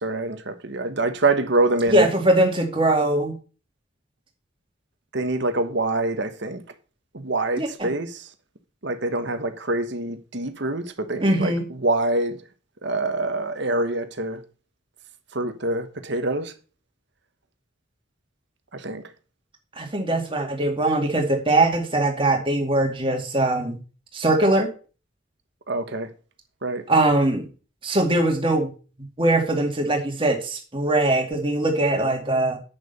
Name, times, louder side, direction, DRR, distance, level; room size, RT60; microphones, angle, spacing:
voice 1, 0.0-2.1 5.1-6.6 7.1-8.3 8.8-12.4 12.8-14.4 15.3-16.5 18.7-19.1 25.7-26.1 26.6-26.8, right 2 dB, 60° right, 1.3 m, -25 dB
voice 2, 1.9-3.4 7.6-7.9 11.2-11.6 19.8-23.8 24.1-24.7 26.9-27.5 27.8-28.7 29.2-32.6, right 2 dB, 25° right, 2.3 m, -21 dB
8.7 x 6.9 x 5.4 m
head